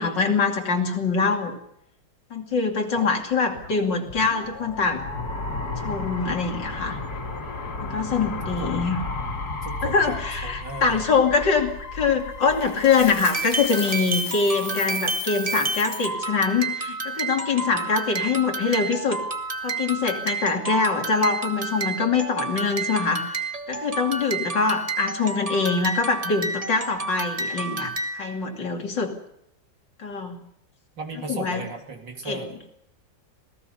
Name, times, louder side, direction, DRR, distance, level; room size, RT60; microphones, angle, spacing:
voice 1, 0.0-1.6 2.3-5.1 5.8-7.0 7.8-9.0 9.8-19.2 19.6-23.2 23.7-29.1 30.0-30.4 31.3-31.6 32.3-32.4, left 4 dB, 80° left, 3 dB, 3.3 m, -24 dB
sound 1, 3.3-14.2, left 2 dB, 60° left, 3.2 m, -33 dB
voice 2, 9.6-11.1 31.0-32.7, right 3 dB, 80° right, 3 dB, 3.7 m, -36 dB
Coin (dropping), 12.6-16.1, left 2 dB, 20° left, 0.6 m, -35 dB
sound 2, 13.3-28.4, right 3 dB, 20° right, 1.4 m, -30 dB
27.5 x 18.0 x 5.6 m, 0.77 s
omnidirectional pair, 1.9 m